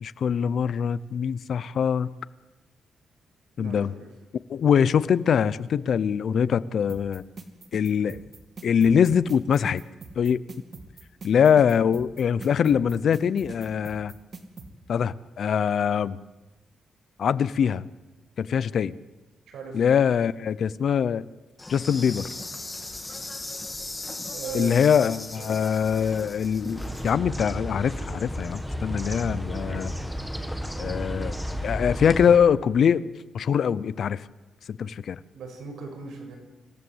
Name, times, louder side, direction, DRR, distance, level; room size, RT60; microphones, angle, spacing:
voice 1, 0.0-2.1 3.6-3.9 4.5-7.2 7.7-8.2 8.6-9.8 10.2-10.4 11.2-14.1 14.9-16.2 17.2-17.8 18.4-19.0 19.7-21.2 21.7-22.3 24.5-29.9 30.8-31.3 31.6-33.0 33.3-34.2 34.7-35.2, left 7 dB, 55° left, 17 dB, 0.7 m, -23 dB
voice 2, 3.6-4.1 19.5-19.8 24.3-24.9 25.3-25.6 35.3-36.4, right 5 dB, 75° right, 1 dB, 7.0 m, -38 dB
sound 1, 6.9-14.7, right 4 dB, 40° right, 2.7 m, -42 dB
Insect, 21.6-27.1, left 2 dB, 15° left, 2.8 m, -37 dB
sound 2, 26.7-32.4, equal, ahead, 1.8 m, -32 dB
26.5 x 16.0 x 8.0 m, 1.1 s
cardioid pair, 145°, 0 cm